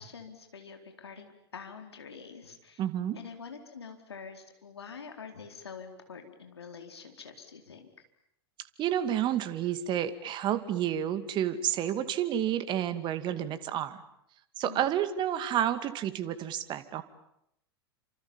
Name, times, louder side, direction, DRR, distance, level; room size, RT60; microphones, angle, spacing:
voice 1, 0.0-2.8 3.2-7.9 14.6-14.9, left 5 dB, 75° left, 5 dB, 4.4 m, -46 dB
voice 2, 2.8-3.2 8.8-14.0 14.6-17.0, right 10 dB, 35° right, 11 dB, 2.2 m, -30 dB
29.0 x 27.0 x 7.3 m, 0.79 s
figure-of-eight pair, 95°, 14 cm